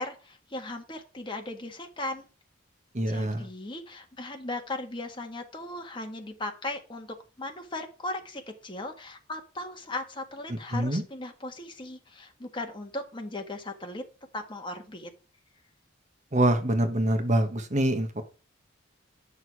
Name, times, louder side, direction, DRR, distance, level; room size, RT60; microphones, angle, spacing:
voice 1, 0.0-2.3 3.1-14.1 14.3-15.1, left 2 dB, 25° left, 4 dB, 1.6 m, -37 dB
voice 2, 2.9-3.5 10.5-11.0 16.3-18.2, right 1 dB, 35° right, 7 dB, 1.3 m, -25 dB
9.3 x 6.4 x 4.7 m, 0.34 s
head